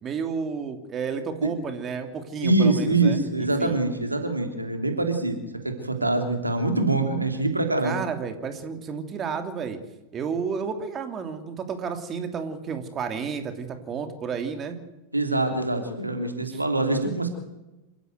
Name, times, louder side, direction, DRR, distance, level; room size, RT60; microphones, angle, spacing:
voice 1, 0.0-3.8 7.8-9.8 10.1-14.8 16.5-16.6, right 6 dB, 30° right, 7 dB, 2.9 m, -31 dB
voice 2, 2.4-8.0 15.1-17.3, right 2 dB, 90° right, 6 dB, 3.2 m, -24 dB
27.0 x 15.5 x 8.0 m, 1.0 s
figure-of-eight pair, 90°, 0 cm